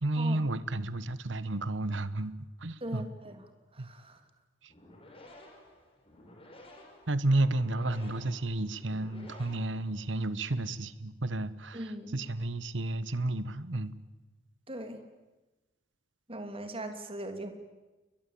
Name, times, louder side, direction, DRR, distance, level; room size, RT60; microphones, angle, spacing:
voice 1, 0.0-2.3 2.6-3.1 3.8-3.9 7.1-13.9, right 2 dB, 75° right, 15 dB, 1.3 m, -31 dB
voice 2, 2.8-3.4 3.7-4.2 11.7-12.2 14.7-15.0 16.3-17.5, right 1 dB, 30° right, 7 dB, 3.1 m, -40 dB
sound 1, 4.6-10.3, left 1 dB, 30° left, 5.5 m, -54 dB
29.5 x 22.5 x 8.7 m, 1.1 s
head